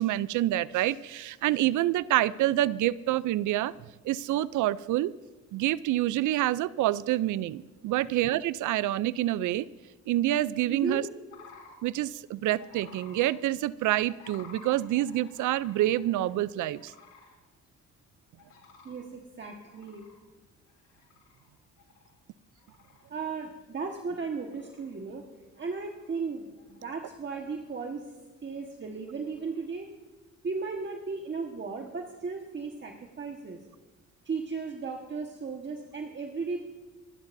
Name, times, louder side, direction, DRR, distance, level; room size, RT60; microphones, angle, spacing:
voice 1, 0.0-3.7 4.0-5.1 5.5-9.7 10.1-11.0 11.8-16.9, right 14 dB, 75° right, 19 dB, 0.5 m, -27 dB
voice 2, 10.6-11.0 18.8-20.1 23.1-25.3 25.6-28.1 28.4-29.9 30.4-33.6 34.2-36.7, right 4 dB, 40° right, 2 dB, 1.5 m, -35 dB
sound 1, 11.3-11.7 12.6-13.3 14.1-16.4 16.7-17.4 17.8-17.9 18.4-19.0 19.5-21.5 21.8-22.2 22.6-23.1 23.6-23.7 24.2-25.0 25.5-26.2 26.6-27.1 27.4-28.0 29.1-29.6, left 5 dB, 85° left, 3.6 m, -54 dB
26.5 x 12.0 x 2.7 m, 1.2 s
cardioid pair, 90°, 30 cm